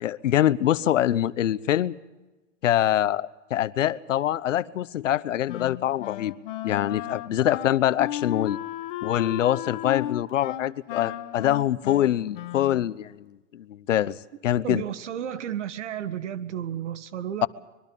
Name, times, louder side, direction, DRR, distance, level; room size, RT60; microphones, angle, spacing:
voice 1, 0.0-1.9 2.6-6.3 6.6-8.6 9.0-13.2 13.5-14.8, left 12 dB, 80° left, 1.0 m, -24 dB
Wind instrument woodwind instrument, 5.5-12.9, left 14 dB, 45° left, 1.2 m, -34 dB
voice 2, 14.6-17.5, right 10 dB, 65° right, 1.6 m, -32 dB
25.0 x 23.0 x 5.4 m
hypercardioid pair, 160°, 37 cm